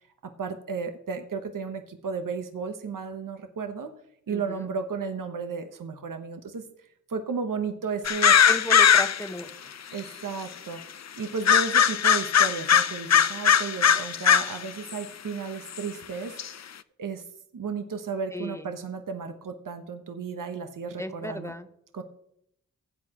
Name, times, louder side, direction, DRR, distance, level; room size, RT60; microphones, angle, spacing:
voice 1, 0.0-3.9 4.3-6.6 7.1-8.4 9.9-10.8 11.2-16.6 17.0-17.2 17.5-21.5 21.9-22.0, right 5 dB, 70° right, 6 dB, 1.1 m, -34 dB
voice 2, 4.3-4.6 8.5-9.5 18.3-18.6 21.0-21.7, equal, 10° left, 9 dB, 0.9 m, -34 dB
sound 1, 8.0-9.4 10.0-10.1 11.4-14.6 14.9-15.0 15.8-15.9 16.4-16.5, left 8 dB, 55° left, 0.5 m, -20 dB
15.5 x 8.7 x 3.0 m, 0.74 s
cardioid pair, 55°, 33 cm